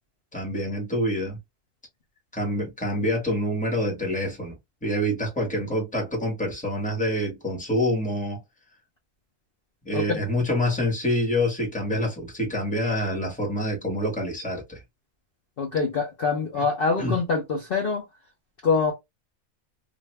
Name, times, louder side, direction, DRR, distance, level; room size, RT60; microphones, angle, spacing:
voice 1, 0.3-1.4 2.3-8.4 9.8-14.8 17.0-17.2, left 1 dB, 5° left, 1.2 m, -26 dB
voice 2, 9.9-10.2 15.6-18.1 18.6-18.9, left 4 dB, 50° left, 0.8 m, -25 dB
2.6 x 2.5 x 3.2 m
omnidirectional pair, 1.5 m